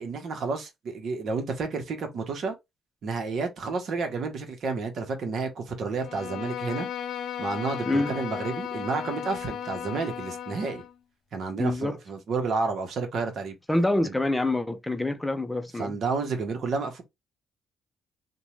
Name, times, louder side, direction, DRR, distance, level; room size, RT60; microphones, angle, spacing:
voice 1, 0.0-2.5 3.0-6.9 7.4-10.8 11.3-13.6 14.0-14.1 15.8-17.0, right 4 dB, 65° right, 0.9 m, -30 dB
Bowed string instrument, 6.0-10.9, left 9 dB, 70° left, 0.5 m, -35 dB
voice 2, 11.6-12.0 13.7-16.0, left 2 dB, 10° left, 0.5 m, -26 dB
2.6 x 2.2 x 3.1 m
cardioid pair, 90°, 0 cm